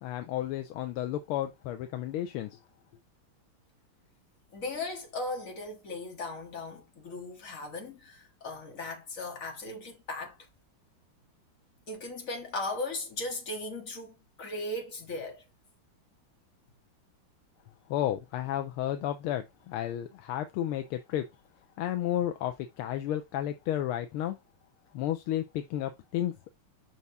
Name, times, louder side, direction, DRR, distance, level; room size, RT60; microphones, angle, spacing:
voice 1, 0.0-2.6 17.9-21.3 21.8-24.4 24.9-26.5, left 12 dB, 85° left, 1.5 m, -32 dB
voice 2, 4.5-10.4 11.9-15.4, left 2 dB, 40° left, 1.9 m, -37 dB
5.7 x 4.7 x 3.9 m
omnidirectional pair, 2.4 m